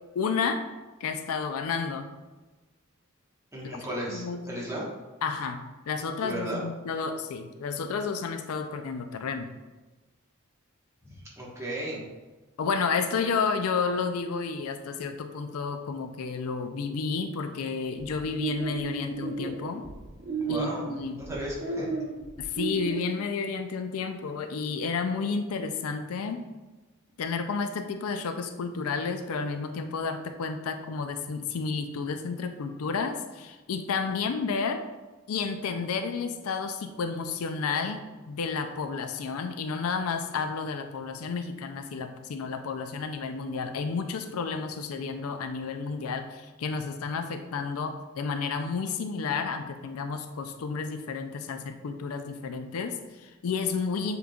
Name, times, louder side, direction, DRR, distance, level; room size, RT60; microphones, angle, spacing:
voice 1, 0.1-0.6 1.0-2.1 3.7-3.8 4.1-4.4 5.2-9.5 12.6-19.8 20.5-21.2 22.4-26.4 27.2-34.8 35.3-54.2, left 5 dB, 80° left, 7 dB, 0.4 m, -31 dB
voice 2, 3.5-4.9 6.2-6.6 11.0-12.1 20.4-21.9, right 1 dB, 15° right, -5 dB, 1.2 m, -35 dB
sound 1, 18.0-23.0, right 4 dB, 50° right, 0.9 m, -34 dB
7.1 x 3.1 x 2.4 m, 1.2 s
head